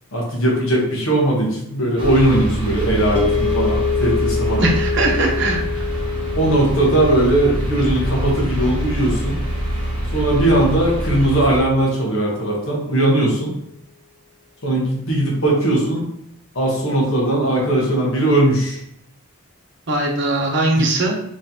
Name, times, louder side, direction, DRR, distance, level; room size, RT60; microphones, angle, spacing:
voice 1, 0.1-4.7 6.4-9.4 10.1-13.5 14.6-16.0 16.5-18.8 20.8-20.9, right 1 dB, 65° left, -3 dB, 1.1 m, -19 dB
sound 1, 2.0-11.6, right 1 dB, 25° right, 0.8 m, -25 dB
sound 2, 3.2-11.4, left 8 dB, 5° left, 0.4 m, -27 dB
voice 2, 4.6-5.9 19.9-21.1, right 2 dB, 55° right, 0 dB, 0.8 m, -20 dB
3.8 x 3.1 x 2.8 m, 0.73 s
head